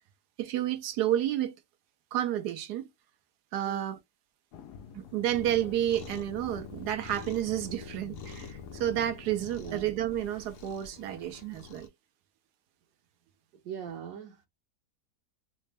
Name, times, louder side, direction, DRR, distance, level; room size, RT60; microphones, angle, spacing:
voice 1, 0.4-1.5 2.1-2.9 3.5-4.0 4.9-11.9, right 12 dB, 90° right, 1.2 m, -30 dB
sound 1, 4.5-9.9, left 8 dB, 90° left, 1.2 m, -50 dB
Cat, 5.3-11.9, left 5 dB, 60° left, 1.0 m, -46 dB
voice 2, 13.6-14.5, right 8 dB, 65° right, 1.1 m, -40 dB
4.0 x 2.2 x 3.2 m
omnidirectional pair, 1.7 m